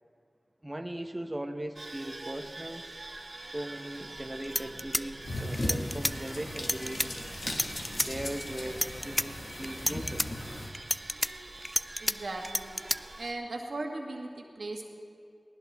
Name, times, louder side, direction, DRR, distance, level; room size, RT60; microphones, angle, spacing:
voice 1, 0.6-2.8 3.5-7.1 7.9-10.3, right 1 dB, 20° right, 4 dB, 1.0 m, -39 dB
sound 1, 1.7-13.3, right 2 dB, 60° right, 1.3 m, -45 dB
sound 2, 4.1-4.2 4.4-6.1 6.6-7.1 7.5-8.1 8.6-9.3 9.6-10.3 10.7-12.1 12.4-13.0, equal, 10° left, 0.4 m, -30 dB
sound 3, 5.2-10.7, left 1 dB, 70° left, 1.7 m, -37 dB
voice 2, 12.0-12.8 13.2-14.8, right 2 dB, 85° right, 1 dB, 1.6 m, -37 dB
19.5 x 18.5 x 3.6 m, 2.3 s
cardioid pair, 45°, 0 cm